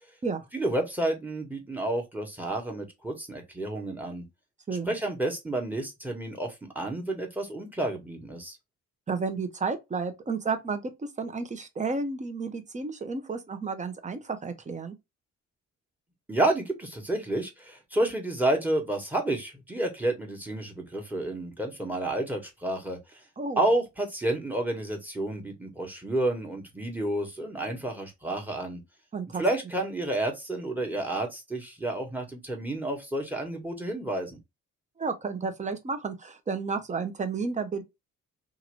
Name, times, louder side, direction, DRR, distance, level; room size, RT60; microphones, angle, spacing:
voice 1, 0.5-4.2 4.9-8.6 16.3-23.2 23.6-28.8 29.4-34.3, right 1 dB, 5° right, 1.3 m, -30 dB
voice 2, 9.1-15.0 23.4-23.6 29.1-29.4 35.0-37.8, right 4 dB, 25° right, 0.8 m, -32 dB
2.9 x 2.5 x 3.0 m
cardioid pair, 90°, 30 cm